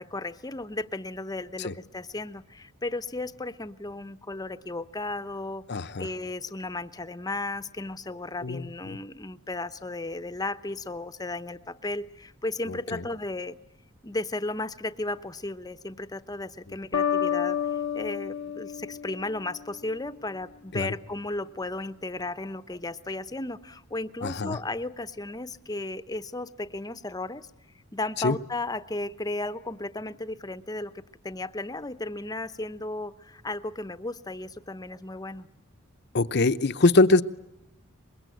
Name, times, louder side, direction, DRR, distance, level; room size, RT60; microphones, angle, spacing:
voice 1, 0.0-5.6 6.0-13.6 14.0-17.6 17.9-27.5 27.9-35.5, left 2 dB, 20° left, 13 dB, 0.9 m, -34 dB
voice 2, 5.7-6.1 8.4-8.7 12.7-13.0 20.7-20.9 24.2-24.6 28.2-28.4 36.1-37.2, left 2 dB, 55° left, 10 dB, 0.8 m, -23 dB
sound 1, 16.9-19.8, left 8 dB, 85° left, 1.1 m, -29 dB
25.0 x 22.0 x 9.2 m, 0.92 s
head